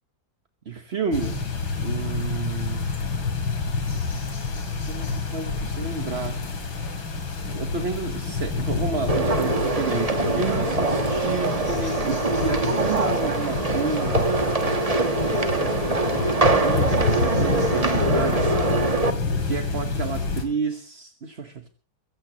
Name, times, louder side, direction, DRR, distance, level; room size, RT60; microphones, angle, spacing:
voice 1, 0.6-1.4 1.8-2.9 4.9-6.5 7.5-14.4 15.1-15.8 16.1-18.6 19.4-21.7, right 4 dB, 40° right, 1.2 m, -31 dB
sound 1, 1.1-20.5, left 4 dB, 85° left, 3.5 m, -28 dB
sound 2, 9.1-19.1, right 3 dB, 25° right, 1.1 m, -23 dB
Wind instrument woodwind instrument, 13.8-19.7, left 3 dB, 40° left, 2.4 m, -44 dB
24.0 x 15.5 x 3.0 m
omnidirectional pair, 2.1 m